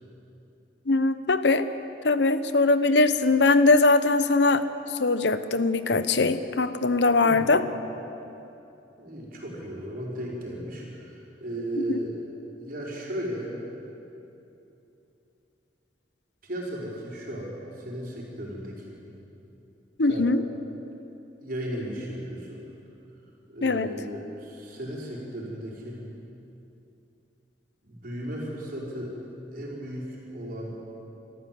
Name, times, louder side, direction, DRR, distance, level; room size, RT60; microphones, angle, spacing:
voice 1, 0.9-1.7 2.0-7.6 11.8-12.0 20.0-20.4 23.6-23.9, left 3 dB, 70° left, 12 dB, 0.9 m, -21 dB
voice 2, 9.0-12.2 12.6-13.6 16.4-19.0 20.1-20.3 21.4-22.6 23.5-26.0 27.8-29.1 29.5-30.8, right 1 dB, 55° right, -4 dB, 5.1 m, -35 dB
26.0 x 14.0 x 7.8 m, 2.9 s
head